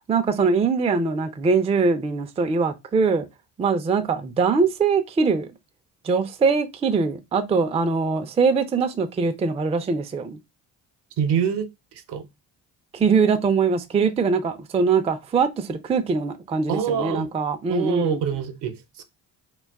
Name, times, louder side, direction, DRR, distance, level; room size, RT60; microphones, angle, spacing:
voice 1, 0.1-3.3 3.6-5.5 6.0-10.4 12.9-18.2, right 5 dB, 15° right, 0.3 m, -22 dB
voice 2, 11.2-12.3 16.7-17.3 17.7-19.0, right 8 dB, 70° right, 0.7 m, -26 dB
2.4 x 2.3 x 3.4 m
supercardioid pair, 70°, 41 cm